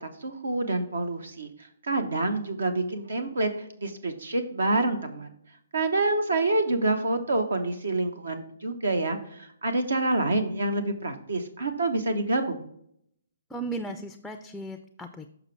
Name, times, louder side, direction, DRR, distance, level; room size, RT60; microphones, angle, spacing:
voice 1, 0.0-1.5 1.8-5.3 5.7-12.7, right 2 dB, 75° right, 7 dB, 0.8 m, -27 dB
voice 2, 13.5-15.3, right 2 dB, 5° left, 7 dB, 0.4 m, -36 dB
6.5 x 5.9 x 3.2 m, 0.71 s
figure-of-eight pair, 135°, 0 cm